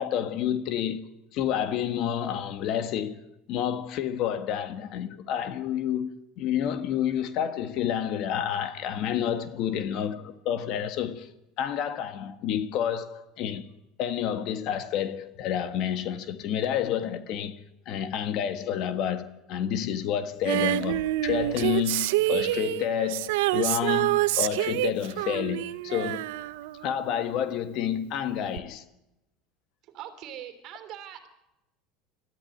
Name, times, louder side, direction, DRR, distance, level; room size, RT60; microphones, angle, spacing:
voice 1, 0.0-3.2 3.5-6.1 6.4-11.3 11.6-13.6 14.0-26.2 26.8-28.8, left 9 dB, 50° left, 1.6 m, -29 dB
Female singing, 20.4-27.4 28.6-28.7, right 16 dB, 90° right, 0.8 m, -27 dB
voice 2, 29.8-31.3, right 10 dB, 45° right, 3.2 m, -42 dB
22.5 x 14.0 x 9.5 m
cardioid pair, 155°, 0 cm